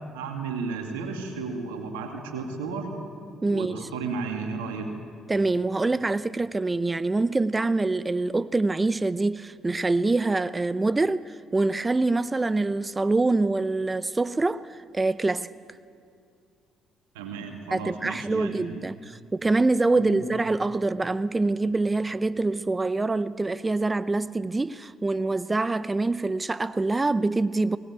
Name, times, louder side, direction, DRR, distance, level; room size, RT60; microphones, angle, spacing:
voice 1, 0.1-2.9 3.4-4.9 17.1-18.8 19.9-20.2, right 5 dB, 85° right, 2.4 m, -33 dB
voice 2, 3.4-3.9 5.3-15.5 17.7-27.8, right 3 dB, 25° right, 0.7 m, -25 dB
22.5 x 19.5 x 8.7 m
hypercardioid pair, 50°, 0 cm